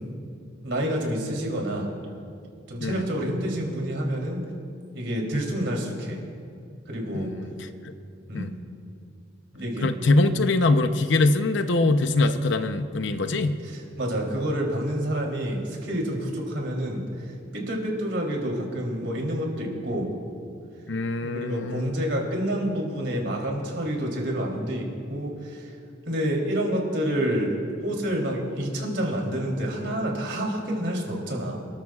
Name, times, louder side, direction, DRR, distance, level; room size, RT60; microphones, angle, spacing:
voice 1, 0.6-1.9 2.7-4.4 4.9-6.2 6.9-7.3 8.3-8.5 9.5-9.9 13.6-20.1 21.2-25.7 26.1-31.7, equal, 65° right, -1 dB, 3.2 m, -28 dB
voice 2, 7.1-7.5 7.8-7.9 8.3-8.5 9.8-13.6 20.9-21.9, left 2 dB, 65° left, 9 dB, 0.7 m, -23 dB
29.0 x 13.5 x 2.4 m, 2.4 s
head